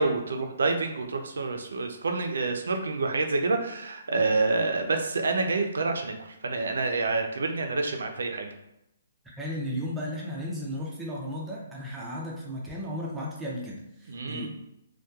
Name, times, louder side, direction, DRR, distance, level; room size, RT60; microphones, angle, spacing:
voice 1, 0.0-8.5 14.1-14.5, right 3 dB, 85° right, 4 dB, 0.4 m, -28 dB
voice 2, 9.2-14.5, equal, 5° right, -4 dB, 0.4 m, -35 dB
2.8 x 2.2 x 2.3 m, 0.83 s
hypercardioid pair, 165°, 0 cm